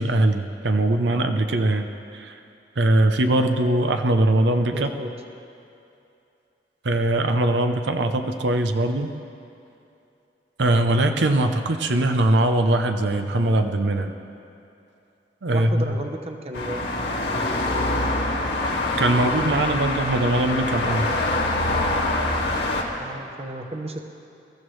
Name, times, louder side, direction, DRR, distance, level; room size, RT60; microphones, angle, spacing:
voice 1, 0.0-2.4 2.8-4.9 6.8-9.1 10.6-14.1 15.4-15.9 19.0-21.0, right 1 dB, 85° right, 6 dB, 0.7 m, -21 dB
voice 2, 4.7-5.1 15.5-16.8 20.8-21.2 23.0-24.0, right 1 dB, 35° right, 4 dB, 0.9 m, -33 dB
sound 1, 16.5-22.8, left 2 dB, 75° left, 2.0 m, -25 dB
22.5 x 14.0 x 3.3 m, 2.7 s
head